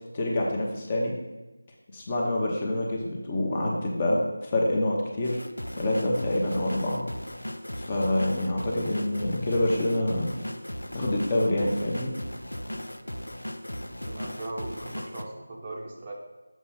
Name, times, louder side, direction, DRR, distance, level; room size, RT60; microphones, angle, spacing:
voice 1, 0.1-1.1 1.9-5.4 5.8-7.0 7.8-10.4 10.9-12.1, left 1 dB, 20° left, -2 dB, 0.9 m, -26 dB
sound 1, 5.2-15.2, equal, 75° left, 0.6 m, -37 dB
voice 2, 14.0-16.1, right 2 dB, 25° right, -1 dB, 0.8 m, -38 dB
7.2 x 3.8 x 5.7 m, 1.1 s
figure-of-eight pair, 165°, 0 cm